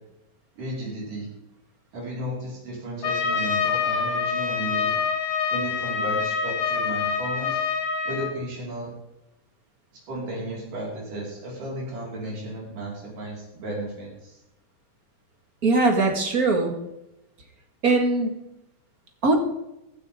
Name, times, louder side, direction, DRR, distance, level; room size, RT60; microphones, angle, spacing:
voice 1, 0.6-1.3 1.9-5.0 5.5-7.6 8.0-8.9 9.9-14.4, right 1 dB, 85° right, -4 dB, 6.5 m, -34 dB
Trumpet, 3.0-8.3, left 6 dB, 50° left, 1.6 m, -26 dB
voice 2, 15.6-16.8 17.8-18.3 19.2-19.4, right 3 dB, 35° right, 3 dB, 1.9 m, -21 dB
16.5 x 12.0 x 3.7 m, 0.87 s
omnidirectional pair, 3.6 m